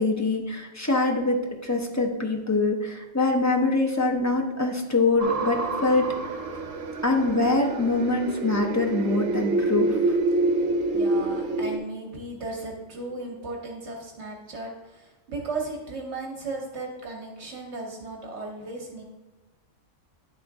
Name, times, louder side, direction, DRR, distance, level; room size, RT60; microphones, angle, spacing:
voice 1, 0.0-6.1 7.0-10.2, left 2 dB, 20° left, 1 dB, 0.5 m, -24 dB
sound 1, 5.2-11.8, right 2 dB, 80° right, 1.2 m, -27 dB
voice 2, 7.0-7.4 10.5-19.0, right 3 dB, 65° right, 0 dB, 1.3 m, -36 dB
11.0 x 3.7 x 3.5 m, 1.1 s
omnidirectional pair, 1.3 m